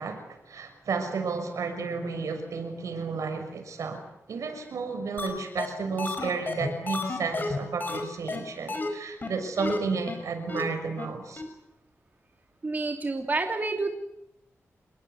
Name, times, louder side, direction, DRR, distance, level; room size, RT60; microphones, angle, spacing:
voice 1, 0.0-11.4, right 4 dB, 85° right, 7 dB, 6.5 m, -32 dB
sound 1, 5.2-5.3 5.6-5.7 6.0-8.0 8.3-8.4 8.7-8.9 9.2-9.3 9.6-9.8 10.1-10.2 10.5-10.6 11.0-11.1 11.4-11.5, left 3 dB, 35° left, 5.3 m, -31 dB
voice 2, 12.6-13.9, right 3 dB, 35° right, 4 dB, 3.1 m, -28 dB
27.5 x 21.5 x 8.3 m, 0.81 s
wide cardioid pair, 125°, 5 cm